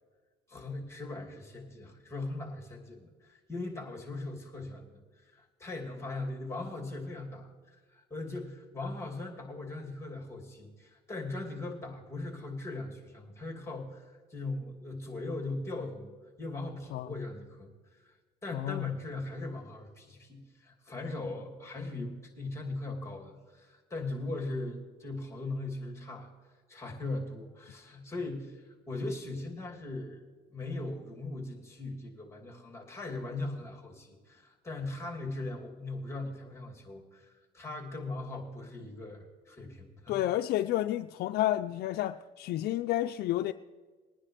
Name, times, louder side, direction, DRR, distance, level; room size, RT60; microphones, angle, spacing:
voice 1, 0.5-16.1 16.4-26.3 26.7-30.2 30.5-40.2, left 2 dB, 15° left, 2.7 m, -39 dB
voice 2, 18.5-18.9 40.1-43.5, left 14 dB, 70° left, 0.4 m, -30 dB
21.0 x 10.0 x 3.3 m
cardioid pair, 110°, 17 cm